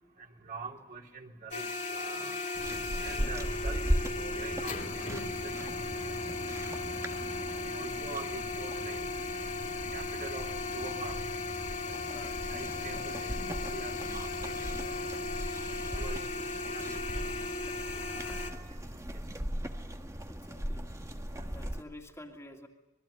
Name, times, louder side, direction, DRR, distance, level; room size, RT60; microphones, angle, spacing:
voice 1, 0.2-1.7 1.9-2.4 3.0-3.9 4.2-6.2 7.7-9.1 9.9-11.2 12.5-13.3 13.7-15.3 15.9-16.4 16.7-17.3 18.1-18.5 21.3-21.5, right 3 dB, 40° right, 0 dB, 3.3 m, -44 dB
sound 1, 1.5-18.5, left 3 dB, 35° left, 2.9 m, -36 dB
sound 2, 2.5-21.8, equal, 15° right, 1.4 m, -38 dB
voice 2, 7.8-8.1 12.1-12.4 20.3-20.8 21.5-22.7, left 1 dB, 15° left, 1 dB, 2.5 m, -49 dB
26.5 x 21.5 x 8.7 m, 0.90 s
head